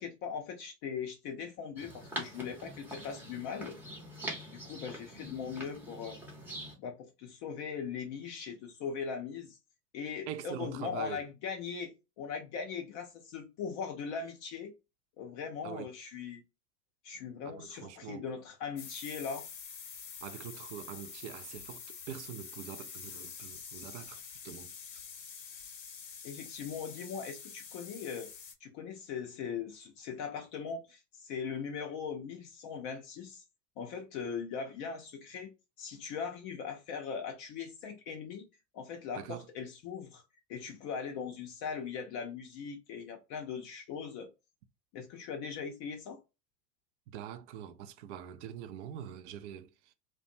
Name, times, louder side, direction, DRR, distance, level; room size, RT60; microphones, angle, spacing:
voice 1, 0.0-3.8 4.5-6.2 6.8-9.6 9.9-14.7 15.2-16.4 17.0-19.5 26.2-28.3 28.6-33.4 33.8-35.5 35.8-38.5 38.7-40.2 40.5-44.3 44.9-46.2, left 6 dB, 35° left, 0.5 m, -40 dB
sound 1, 1.8-6.8, right 1 dB, 5° right, 0.6 m, -44 dB
voice 2, 10.3-11.3 15.6-15.9 17.4-18.3 20.2-24.7 39.2-39.5 47.1-49.7, right 9 dB, 50° right, 0.4 m, -44 dB
sound 2, 18.8-28.5, left 6 dB, 90° left, 0.7 m, -47 dB
2.5 x 2.2 x 2.6 m
hypercardioid pair, 90°, 50 cm